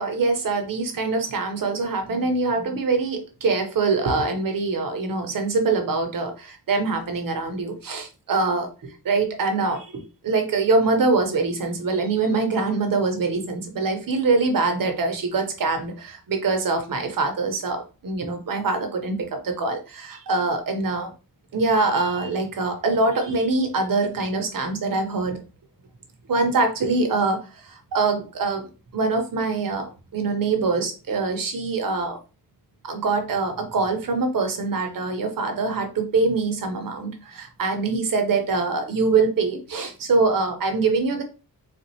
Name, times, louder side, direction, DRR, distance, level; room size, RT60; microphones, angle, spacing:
voice 1, 0.0-21.1 21.5-25.4 26.3-32.2 32.8-41.2, right 3 dB, 65° right, 5 dB, 0.9 m, -24 dB
4.2 x 2.4 x 2.8 m, 0.33 s
wide cardioid pair, 130°, 36 cm